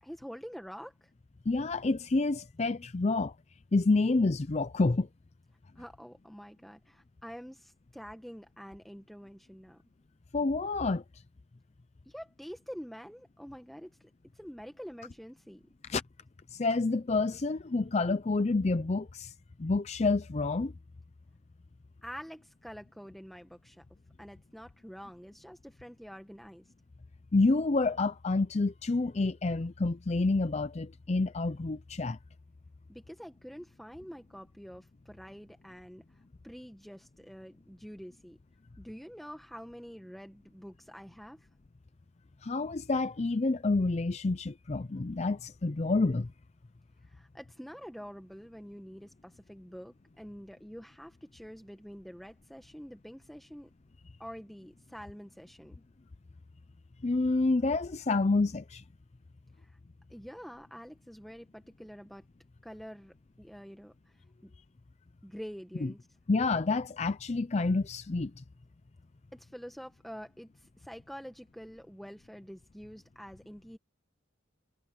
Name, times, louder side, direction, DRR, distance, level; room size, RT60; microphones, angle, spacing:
voice 1, 0.0-1.1 5.7-9.8 12.1-15.6 22.0-23.8 24.2-26.7 32.9-36.0 36.4-38.4 38.8-41.5 47.0-53.7 54.2-55.8 59.6-59.8 60.1-62.2 62.6-64.1 64.4-64.5 65.2-66.0 69.3-73.8, equal, ahead, 1.3 m, -47 dB
voice 2, 1.5-3.3 3.7-5.1 10.3-11.0 15.9-16.0 16.5-19.3 19.6-20.7 27.3-32.2 42.4-46.3 57.0-58.8 66.3-68.4, left 3 dB, 30° left, 0.5 m, -28 dB
head